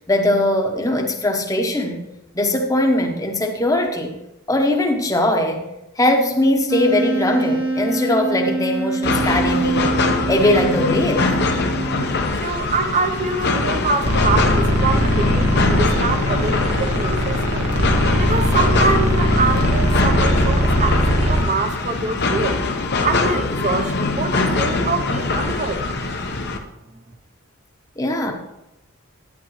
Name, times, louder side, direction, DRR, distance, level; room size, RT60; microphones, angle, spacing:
voice 1, 0.1-2.0 2.3-4.1 4.5-5.7 6.0-9.9 10.3-11.3 28.0-28.3, left 1 dB, 15° left, 3 dB, 0.9 m, -20 dB
Wind instrument woodwind instrument, 6.7-12.4, right 2 dB, 60° right, 1.1 m, -25 dB
sound 1, 9.0-26.6, left 3 dB, 50° left, 0.8 m, -23 dB
voice 2, 12.4-17.7 18.2-22.6 23.0-25.8, right 4 dB, 35° right, 7 dB, 0.7 m, -24 dB
sound 2, 14.0-21.4, equal, 90° right, 1.7 m, -20 dB
10.5 x 9.6 x 3.1 m, 0.90 s
head